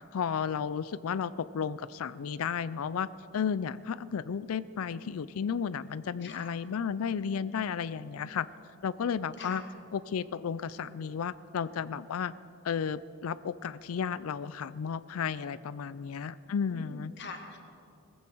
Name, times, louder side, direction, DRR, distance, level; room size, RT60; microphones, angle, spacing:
voice 1, 0.1-3.1 3.3-8.5 8.8-9.6 9.9-12.3 12.6-17.1, left 7 dB, 80° left, 16 dB, 0.4 m, -33 dB
voice 2, 6.2-6.5 8.0-8.3 9.4-9.6 16.5-17.6, left 3 dB, 55° left, 3 dB, 1.9 m, -45 dB
20.0 x 15.0 x 4.6 m, 2.5 s
head